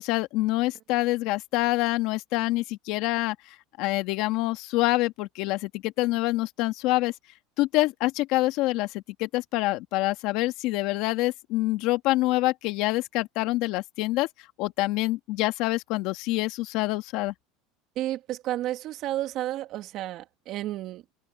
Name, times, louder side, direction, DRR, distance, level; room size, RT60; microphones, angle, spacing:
voice 1, 0.0-3.4 3.8-7.1 7.6-14.3 14.6-17.3, left 19 dB, 65° left, 1.8 m, -26 dB
voice 2, 18.0-21.0, right 14 dB, 50° right, 2.9 m, -31 dB
open air
supercardioid pair, 135°, 0 cm